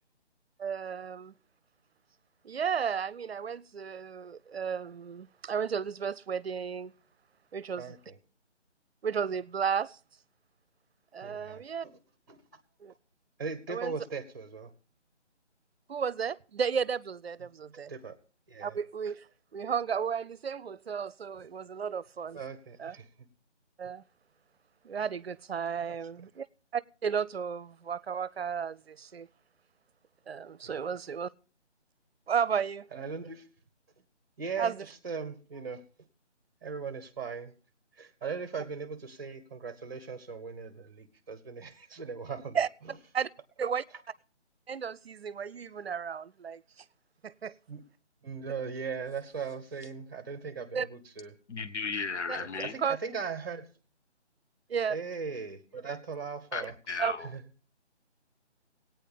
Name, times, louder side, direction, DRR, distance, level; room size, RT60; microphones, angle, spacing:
voice 1, 0.6-1.3 2.4-6.9 7.5-7.9 9.0-10.0 11.1-11.9 12.8-12.9 13.7-13.9 15.9-17.9 18.6-19.2 19.5-22.4 22.8-23.0 23.8-24.0 24.8-26.5 26.7-29.3 30.3-31.3 32.3-32.9 34.6-34.9 42.5-42.7 43.1-43.3 43.6-43.8 44.7-46.6 47.2-47.6 50.7-50.9 52.3-52.4 52.8-53.0 54.7-55.0 57.0-57.1, right 7 dB, 60° right, 0.6 m, -33 dB
voice 2, 7.8-8.2 11.2-12.0 12.3-12.4 13.4-14.7 17.9-18.2 18.5-18.8 22.3-23.1 25.9-26.0 30.6-30.8 32.9-33.4 34.4-35.8 36.6-37.5 38.0-42.6 47.7-47.8 48.2-51.3 52.3-53.7 54.9-56.7 57.2-57.4, right 5 dB, 15° right, 0.9 m, -39 dB
voice 3, 51.5-52.7 56.5-57.2, left 5 dB, 75° left, 0.9 m, -35 dB
17.0 x 9.1 x 5.1 m
figure-of-eight pair, 165°, 35 cm